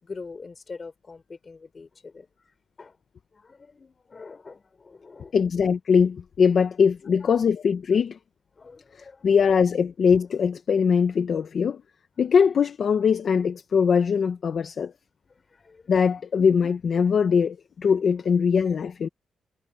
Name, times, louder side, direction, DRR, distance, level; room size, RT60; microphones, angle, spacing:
voice 1, 0.0-2.3 2.8-3.0 3.3-5.3 8.6-9.3 14.5-14.6 15.5-16.0, left 4 dB, 25° left, 5.2 m, -44 dB
voice 2, 5.3-8.2 8.9-11.8 12.2-14.9 15.9-19.1, left 6 dB, 45° left, 1.0 m, -21 dB
wide cardioid pair, 155°, 0 cm